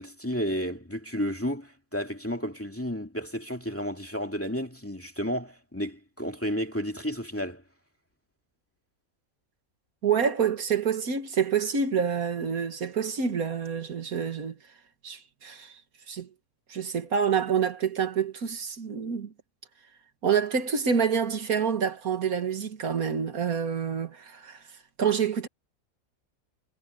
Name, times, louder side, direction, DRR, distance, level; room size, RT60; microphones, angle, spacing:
voice 1, 0.0-7.6, equal, 10° left, 2.3 m, -32 dB
voice 2, 10.0-14.6 15.0-15.8 16.1-16.3 16.7-19.3 20.2-24.6 25.0-25.5, right 7 dB, 85° right, 2.2 m, -27 dB
omnidirectional pair, 1.5 m